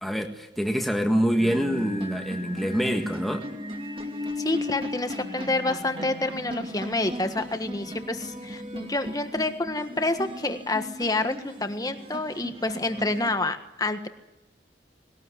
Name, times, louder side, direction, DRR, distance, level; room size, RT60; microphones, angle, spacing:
voice 1, 0.0-3.5, equal, ahead, 2 dB, 1.6 m, -26 dB
sound 1, 1.4-13.3, left 1 dB, 30° right, 2.4 m, -36 dB
voice 2, 4.4-14.1, left 2 dB, 20° left, 8 dB, 1.5 m, -28 dB
21.0 x 19.0 x 9.9 m, 0.94 s
head